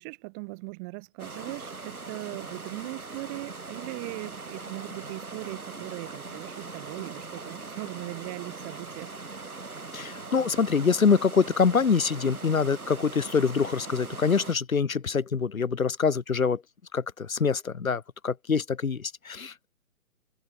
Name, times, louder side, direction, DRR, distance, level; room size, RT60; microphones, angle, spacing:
voice 1, 0.0-9.1, right 35 dB, 15° right, 0.8 m, -39 dB
sound 1, 1.2-14.5, right 3 dB, 80° right, 5.6 m, -41 dB
voice 2, 9.9-16.6 16.9-19.7, left 5 dB, 70° left, 2.3 m, -25 dB
figure-of-eight pair, 135°, 43 cm